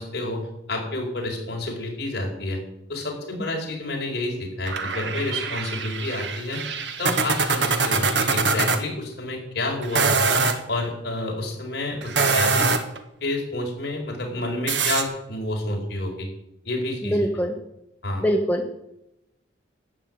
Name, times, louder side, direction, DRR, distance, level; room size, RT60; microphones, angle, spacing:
voice 1, 0.0-2.6 2.9-6.6 7.0-10.4 10.7-12.7 13.2-16.3 16.6-17.2 18.0-18.3, left 2 dB, 60° left, 0 dB, 4.8 m, -29 dB
sound 1, 4.7-8.8 9.8-10.6 12.0-13.0 14.7-15.0, right 4 dB, 75° right, 1.5 m, -23 dB
voice 2, 17.0-17.6 18.2-18.7, equal, 10° left, 2 dB, 1.1 m, -23 dB
12.5 x 8.4 x 9.5 m, 0.83 s
head